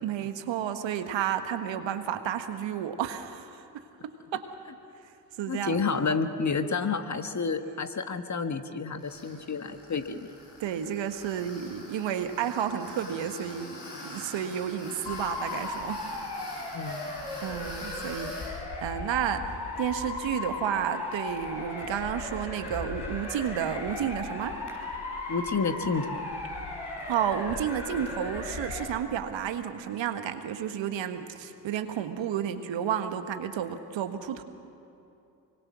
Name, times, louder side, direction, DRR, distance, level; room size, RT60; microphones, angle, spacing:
voice 1, 0.0-3.6 4.3-4.5 5.4-5.9 9.3-9.4 9.8-9.9 10.6-13.8 14.0-16.0 17.4-18.5 18.8-24.6 27.1-34.4, right 9 dB, 65° right, 9 dB, 1.5 m, -31 dB
voice 2, 5.5-10.3 16.7-17.1 25.3-26.3, left 4 dB, 35° left, 8 dB, 1.6 m, -30 dB
Tools, 9.0-18.5, left 1 dB, 80° left, 7.9 m, -45 dB
Motor vehicle (road) / Siren, 15.0-28.8, left 2 dB, 55° left, 6.4 m, -36 dB
24.5 x 24.0 x 6.2 m, 2.7 s
hypercardioid pair, 40°, 49 cm